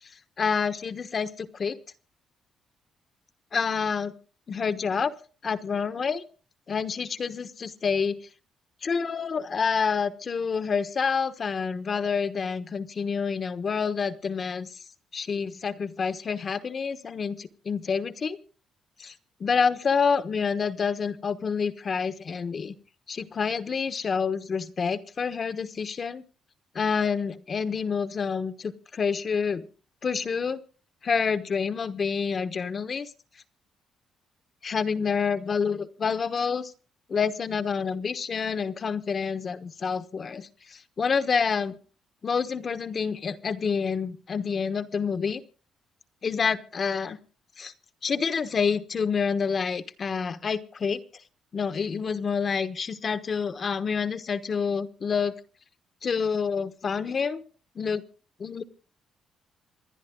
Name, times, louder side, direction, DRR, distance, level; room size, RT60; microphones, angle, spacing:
voice 1, 0.4-1.8 3.5-4.1 4.5-5.1 5.4-6.2 6.7-8.2 8.8-14.8 15.1-18.4 19.0-19.1 19.4-22.7 23.1-26.2 26.7-29.7 30.0-30.6 31.0-33.1 34.6-36.7 37.1-41.8 42.2-45.4 46.2-47.2 47.6-47.7 48.0-51.0 51.5-55.4 56.0-57.4 57.7-58.0 58.4-58.6, left 5 dB, 45° left, 12 dB, 1.1 m, -28 dB
27.0 x 10.0 x 3.8 m, 0.39 s
cardioid pair, 90°, 0 cm